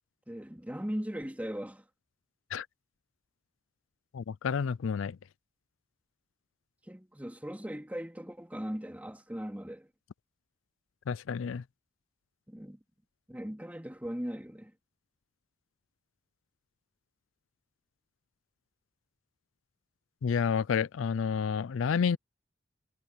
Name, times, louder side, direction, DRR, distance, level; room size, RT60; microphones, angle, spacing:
voice 1, 0.3-1.8 6.9-9.9 12.5-12.8 13.3-14.7, equal, 10° right, 2.8 m, -39 dB
voice 2, 4.1-5.2 11.1-11.6 20.2-22.2, left 6 dB, 90° left, 0.4 m, -30 dB
head